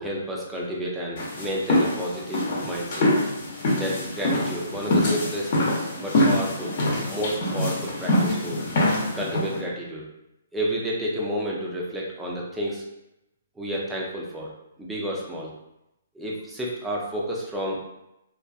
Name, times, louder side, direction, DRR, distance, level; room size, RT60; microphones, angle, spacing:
voice 1, 0.0-3.1 3.7-5.5 6.0-6.8 7.1-8.6 9.1-10.0 10.5-12.8 13.6-14.5 14.8-15.5 16.1-18.1, equal, 5° right, -4 dB, 0.5 m, -30 dB
sound 1, 1.2-9.6, left 1 dB, 55° left, 0.9 m, -24 dB
2.5 x 2.5 x 2.3 m, 0.87 s
hypercardioid pair, 140°, 0 cm